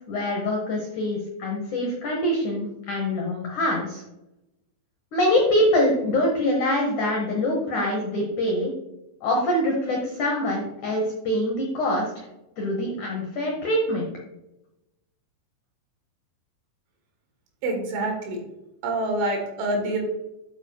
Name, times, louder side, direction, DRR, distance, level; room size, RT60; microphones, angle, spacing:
voice 1, 0.0-4.0 5.1-8.7 9.2-12.2 12.6-14.1, left 1 dB, 85° left, 0 dB, 1.7 m, -24 dB
voice 2, 17.6-18.4 18.8-20.0, right 2 dB, 85° right, 1 dB, 4.3 m, -26 dB
8.9 x 8.3 x 2.3 m, 0.92 s
omnidirectional pair, 5.3 m